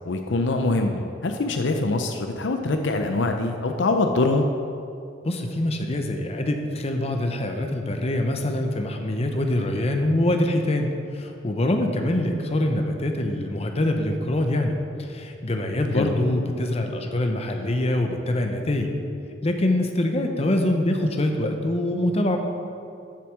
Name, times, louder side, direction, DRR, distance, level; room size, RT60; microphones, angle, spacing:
voice 1, 0.1-4.5 15.9-16.1, left 2 dB, 70° left, 5 dB, 0.6 m, -24 dB
voice 2, 5.2-18.9 19.4-22.4, left 1 dB, 35° left, 4 dB, 0.8 m, -24 dB
7.5 x 7.1 x 6.3 m, 2.5 s
head